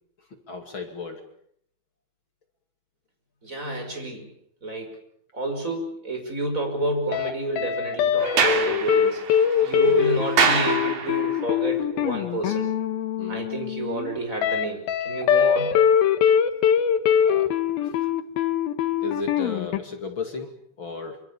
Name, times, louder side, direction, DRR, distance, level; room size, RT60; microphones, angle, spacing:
voice 1, 0.5-1.2 9.8-10.2 11.4-11.6 13.2-13.4 17.2-17.5 17.8-17.9 19.0-21.2, left 4 dB, 35° left, 5 dB, 2.8 m, -34 dB
voice 2, 3.4-4.3 4.6-5.0 5.3-9.2 9.6-12.7 13.3-15.8, right 2 dB, 20° right, 4 dB, 5.7 m, -29 dB
sound 1, 7.1-7.3 7.6-19.8, left 8 dB, 80° left, 3.0 m, -22 dB
Sliding door, 8.2-11.4, right 5 dB, 75° right, 4.4 m, -25 dB
26.0 x 25.5 x 7.2 m, 0.67 s
omnidirectional pair, 4.2 m